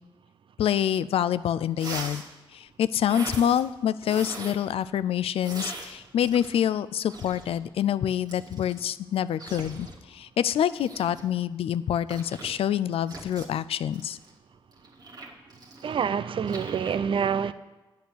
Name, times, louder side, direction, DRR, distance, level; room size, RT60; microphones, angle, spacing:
voice 1, 0.6-2.2 2.5-14.2, left 10 dB, 85° left, 0.3 m, -26 dB
sound 1, 1.7-2.3 3.1-3.6 4.0-4.6 5.4-6.7 7.0-7.6 8.3-8.9 9.4-10.0 10.7-11.2 12.1-12.5 13.1-13.5 13.9-16.1 16.5-17.0, right 2 dB, 45° right, 1.9 m, -41 dB
voice 2, 15.8-17.5, right 7 dB, 65° right, 0.5 m, -27 dB
8.3 x 6.4 x 7.8 m
cardioid pair, 65°, 10 cm